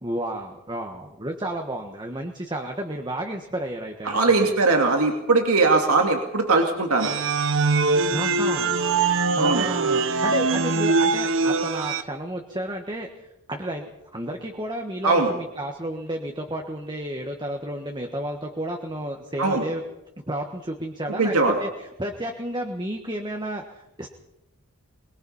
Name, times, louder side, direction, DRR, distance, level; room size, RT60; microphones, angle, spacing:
voice 1, 0.0-4.5 8.1-8.8 9.4-19.8 20.3-21.3 21.6-21.7 22.0-24.1, right 1 dB, 20° right, 3 dB, 1.4 m, -32 dB
voice 2, 4.0-7.1 9.4-9.7 15.0-15.3 19.4-19.6 21.1-21.6, right 3 dB, 80° right, 3 dB, 2.4 m, -20 dB
sound 1, 7.0-12.0, right 4 dB, 60° right, 1.1 m, -22 dB
23.0 x 22.0 x 5.6 m, 0.87 s
head